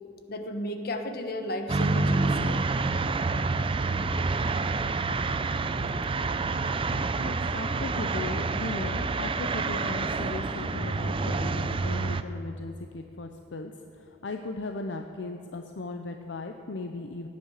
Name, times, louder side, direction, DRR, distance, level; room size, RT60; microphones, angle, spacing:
voice 1, 0.3-2.6, left 1 dB, 55° left, 6 dB, 1.2 m, -34 dB
sound 1, 1.7-12.2, right 3 dB, 30° right, 0.5 m, -28 dB
voice 2, 5.7-6.1 6.5-17.3, left 3 dB, 75° left, 5 dB, 0.7 m, -38 dB
16.5 x 9.6 x 6.5 m, 2.7 s
head